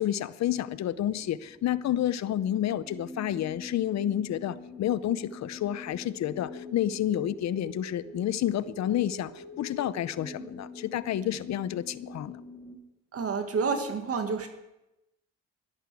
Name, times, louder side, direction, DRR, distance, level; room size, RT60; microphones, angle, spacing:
voice 1, 0.0-12.4, left 11 dB, 65° left, 15 dB, 0.7 m, -30 dB
sound 1, 1.1-12.8, left 2 dB, ahead, 4.3 m, -45 dB
voice 2, 13.1-14.5, right 5 dB, 50° right, 6 dB, 1.9 m, -29 dB
11.5 x 11.0 x 8.3 m, 0.94 s
cardioid pair, 90°, 30 cm